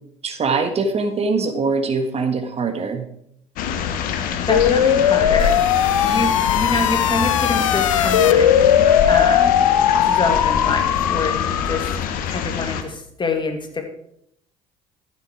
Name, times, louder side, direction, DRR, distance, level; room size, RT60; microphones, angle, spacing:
voice 1, 0.2-3.0, right 4 dB, 40° right, 8 dB, 1.5 m, -22 dB
sound 1, 3.6-12.8, left 7 dB, 60° left, 1.3 m, -25 dB
voice 2, 4.2-8.5 8.7-9.7 10.0-11.9 12.3-13.8, left 3 dB, 30° left, 5 dB, 2.5 m, -26 dB
sound 2, 4.5-12.0, left 9 dB, 90° left, 0.6 m, -18 dB
13.5 x 7.6 x 4.8 m, 0.71 s
hypercardioid pair, 60°, 16 cm